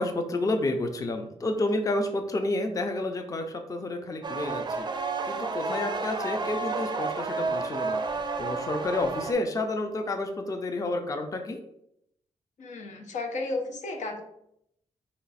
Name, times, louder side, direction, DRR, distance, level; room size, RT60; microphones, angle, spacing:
voice 1, 0.0-4.9 5.2-11.6, left 2 dB, 30° left, 5 dB, 0.4 m, -30 dB
sound 1, 4.2-9.3, right 3 dB, 40° right, 0.4 m, -31 dB
voice 2, 12.6-14.2, left 2 dB, 90° left, 4 dB, 0.7 m, -33 dB
4.2 x 2.4 x 4.0 m, 0.75 s
wide cardioid pair, 135°, 12 cm